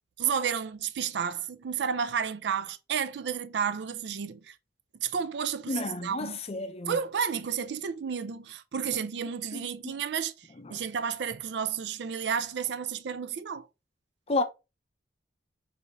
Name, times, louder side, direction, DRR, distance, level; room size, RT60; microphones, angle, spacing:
voice 1, 0.2-4.5 5.0-6.4 6.9-13.7, right 7 dB, 65° right, 0.4 m, -31 dB
voice 2, 5.7-7.0 9.5-9.9 10.6-10.8 14.3-14.4, left 2 dB, 35° left, 0.5 m, -32 dB
5.1 x 2.7 x 2.9 m
head